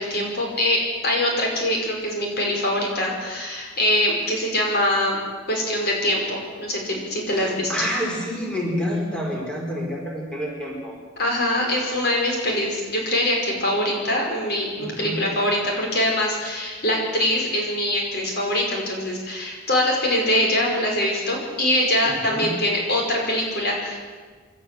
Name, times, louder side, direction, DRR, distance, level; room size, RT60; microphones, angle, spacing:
voice 1, 0.0-5.2 5.5-7.9 11.2-24.0, left 1 dB, 55° left, 0 dB, 5.4 m, -23 dB
voice 2, 7.3-10.9 14.8-15.2 22.0-22.5, equal, 5° left, -2 dB, 4.9 m, -28 dB
27.5 x 13.5 x 7.7 m, 1.5 s
head